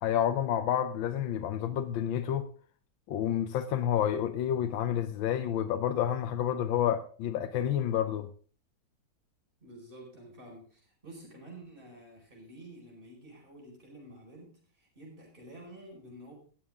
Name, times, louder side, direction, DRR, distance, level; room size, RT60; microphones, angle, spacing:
voice 1, 0.0-2.5 3.1-8.3, left 10 dB, 80° left, 1.5 m, -29 dB
voice 2, 9.6-16.3, right 1 dB, 25° right, 5.0 m, -50 dB
19.5 x 7.2 x 3.6 m
omnidirectional pair, 2.1 m